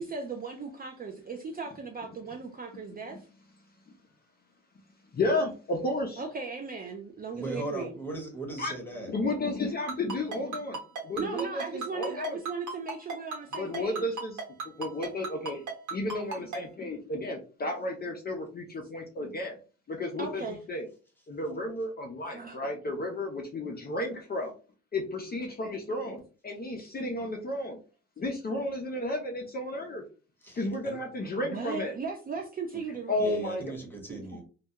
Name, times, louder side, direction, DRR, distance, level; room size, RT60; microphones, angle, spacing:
voice 1, 0.0-3.3 6.2-8.0 11.2-14.0 20.2-20.6 22.3-22.6 31.4-33.4 34.1-34.2, right 4 dB, 30° right, 3 dB, 0.4 m, -37 dB
voice 2, 5.1-6.2 8.6-8.7 9.1-10.8 11.0-12.4 13.5-15.6 15.9-19.6 19.9-20.9 21.3-24.5 24.9-27.8 28.2-30.0 30.6-31.9 33.1-33.7 34.3-34.4, left 2 dB, 30° left, 1 dB, 0.5 m, -33 dB
voice 3, 7.3-9.1 30.4-31.0 32.7-32.8 33.2-34.4, right 2 dB, 5° left, 0 dB, 1.0 m, -38 dB
Ringtone, 9.9-16.6, right 3 dB, 70° right, 1.0 m, -34 dB
2.3 x 2.2 x 2.8 m, 0.36 s
cardioid pair, 90°, 30 cm